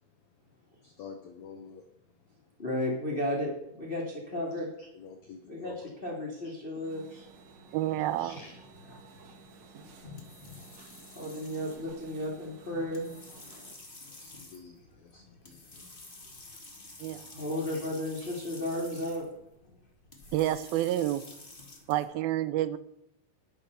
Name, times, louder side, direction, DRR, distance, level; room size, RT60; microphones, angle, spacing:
voice 1, 0.8-1.8 4.3-4.4 4.8-5.7 7.1-7.2 8.2-8.5 11.2-11.4 14.2-15.7 18.2-18.3, left 6 dB, 80° left, 5 dB, 1.6 m, -48 dB
voice 2, 2.6-4.7 5.5-7.1 11.1-13.1 17.3-19.3, left 1 dB, 15° left, -2 dB, 2.1 m, -33 dB
sound 1, 6.8-13.7, right 4 dB, 50° right, 2.7 m, -54 dB
sound 2, 7.2-22.0, left 3 dB, 40° left, 0.7 m, -51 dB
voice 3, 7.7-8.4 17.0-17.2 20.3-21.2 21.9-22.8, right 13 dB, 80° right, 14 dB, 2.2 m, -29 dB
10.5 x 8.9 x 6.7 m, 0.84 s
omnidirectional pair, 4.7 m